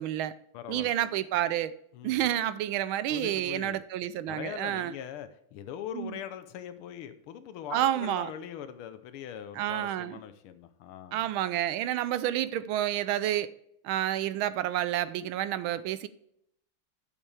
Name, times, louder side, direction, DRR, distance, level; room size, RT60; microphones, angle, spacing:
voice 1, 0.0-0.3 0.7-1.7 2.0-4.9 5.9-6.1 7.7-8.3 9.6-10.1 11.1-13.5 13.8-16.1, right 12 dB, 80° right, 1.3 m, -29 dB
voice 2, 0.5-1.1 1.9-2.3 3.1-3.8 4.3-11.3, left 9 dB, 85° left, 1.6 m, -41 dB
11.0 x 7.0 x 3.4 m
omnidirectional pair, 2.3 m